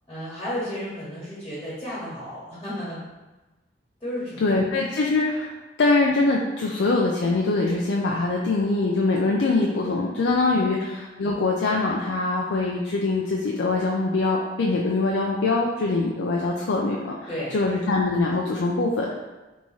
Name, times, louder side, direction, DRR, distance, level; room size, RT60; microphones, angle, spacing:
voice 1, 0.1-3.0 4.0-4.6 17.3-17.6, equal, 20° left, -9 dB, 1.3 m, -33 dB
voice 2, 4.4-5.5 5.8-17.1 17.5-19.1, left 3 dB, 85° left, -2 dB, 0.4 m, -23 dB
3.5 x 3.1 x 4.1 m, 1.1 s
head